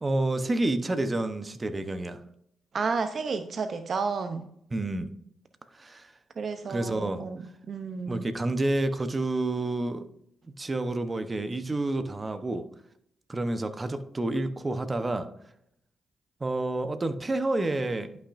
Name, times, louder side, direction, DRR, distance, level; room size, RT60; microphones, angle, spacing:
voice 1, 0.0-2.2 4.7-5.1 5.7-6.1 6.7-7.2 8.1-10.1 10.6-12.6 13.3-15.3 16.4-18.1, right 2 dB, 30° right, 9 dB, 0.9 m, -29 dB
voice 2, 2.7-4.5 6.4-7.4 7.7-8.3, right 4 dB, 55° right, 8 dB, 0.6 m, -31 dB
11.0 x 5.8 x 2.6 m, 0.72 s
cardioid pair, 65°, 0 cm